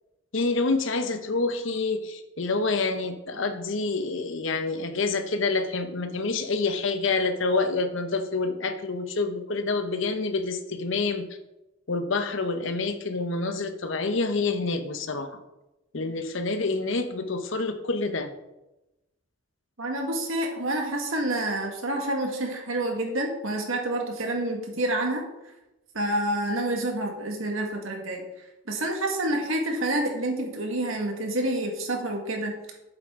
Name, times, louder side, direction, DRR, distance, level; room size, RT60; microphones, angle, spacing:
voice 1, 0.3-11.3 11.9-15.3 15.9-18.3, left 3 dB, 65° left, 8 dB, 0.8 m, -27 dB
voice 2, 19.8-25.2 25.9-28.2 28.7-32.5, right 1 dB, 75° right, 2 dB, 1.7 m, -28 dB
8.1 x 7.2 x 3.7 m, 0.96 s
head